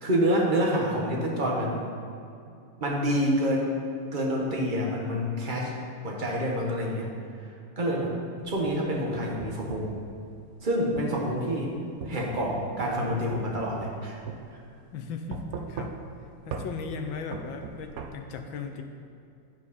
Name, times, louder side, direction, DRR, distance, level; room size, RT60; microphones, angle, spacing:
voice 1, 0.0-1.8 2.8-3.7 4.1-5.7 6.0-7.1 7.8-8.1 8.5-9.9 10.6-11.7 12.0-14.2, equal, 30° right, -2 dB, 1.1 m, -27 dB
sound 1, 8.4-10.0 11.0-11.1 12.0-14.0 14.3-14.4 15.3-16.2 16.5-16.7 17.3-18.1, right 6 dB, 80° right, 0.8 m, -38 dB
voice 2, 14.9-16.0 16.4-18.8, left 5 dB, 70° left, 5 dB, 1.4 m, -37 dB
15.0 x 4.9 x 4.3 m, 2.6 s
omnidirectional pair, 2.4 m